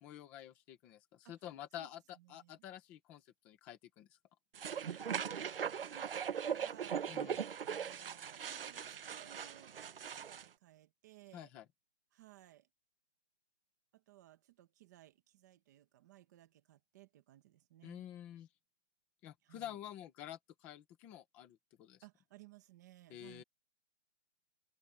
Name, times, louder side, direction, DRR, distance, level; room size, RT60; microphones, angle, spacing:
voice 1, 0.0-4.1 7.1-7.4 11.3-11.6 17.8-18.5 19.2-22.0 23.1-23.4, left 11 dB, 5° left, 0.9 m, -49 dB
voice 2, 2.2-2.6 4.9-5.3 5.6-11.5 12.1-12.7 13.9-18.0 19.4-19.8 22.0-23.4, right 14 dB, 15° right, 1.3 m, -60 dB
sound 1, 4.5-10.5, right 7 dB, 50° right, 1.1 m, -40 dB
hypercardioid pair, 175°, 36 cm